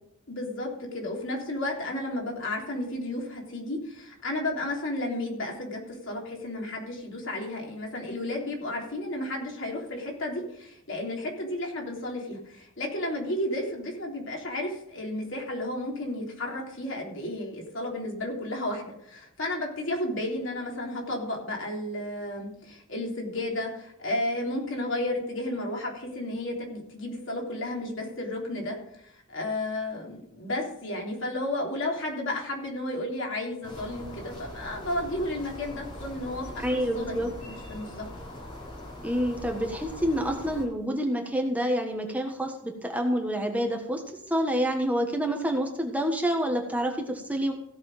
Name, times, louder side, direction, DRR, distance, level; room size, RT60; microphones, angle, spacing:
voice 1, 0.3-28.8 29.3-38.1, left 1 dB, 65° left, -1 dB, 3.5 m, -33 dB
sound 1, 33.6-40.7, left 1 dB, 25° left, 4.1 m, -41 dB
voice 2, 36.6-37.3 39.0-44.0 44.3-47.5, equal, 5° right, 2 dB, 1.3 m, -28 dB
16.0 x 6.8 x 5.1 m, 0.77 s
head